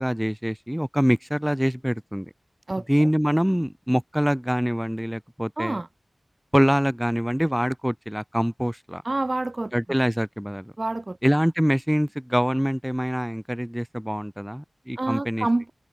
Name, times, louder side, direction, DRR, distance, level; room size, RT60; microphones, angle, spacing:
voice 1, 0.0-2.3 2.9-5.8 6.5-9.0 9.7-10.7 11.2-15.5, equal, 5° right, 2.0 m, -24 dB
voice 2, 5.6-5.9 9.0-9.7 10.8-11.2 15.0-15.7, right 2 dB, 35° right, 1.9 m, -27 dB
wide cardioid pair, 80°, 0 cm